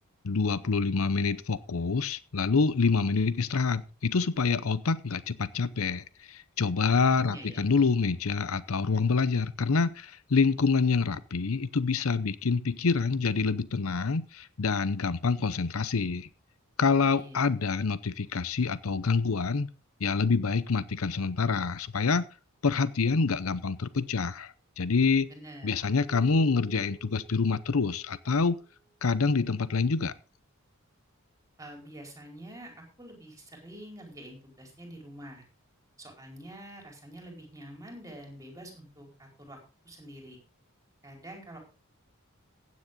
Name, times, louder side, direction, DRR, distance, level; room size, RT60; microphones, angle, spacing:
voice 1, 0.2-16.3 16.8-19.7 20.0-22.2 22.6-25.3 25.6-28.6 29.0-30.1, left 4 dB, 80° left, 16 dB, 0.7 m, -26 dB
voice 2, 7.0-7.6 17.1-17.4 25.3-25.7 31.6-35.4 36.0-39.6 39.8-40.4 41.0-41.6, right 1 dB, 15° right, 2 dB, 4.7 m, -46 dB
Keyboard (musical), 26.0-29.0, right 6 dB, 5° left, 6.2 m, -53 dB
15.5 x 9.5 x 3.8 m, 0.34 s
head